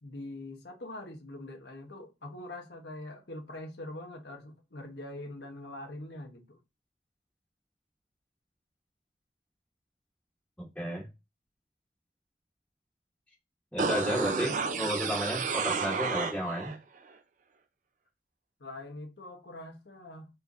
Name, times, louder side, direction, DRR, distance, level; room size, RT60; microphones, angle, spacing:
voice 1, 0.0-6.6 18.6-20.3, left 1 dB, 70° left, 1.2 m, -43 dB
voice 2, 10.6-11.1 13.7-16.8, equal, 5° left, 1.0 m, -32 dB
sound 1, 13.8-16.8 17.1-17.2, right 5 dB, 45° right, 0.5 m, -31 dB
4.4 x 3.4 x 2.6 m
head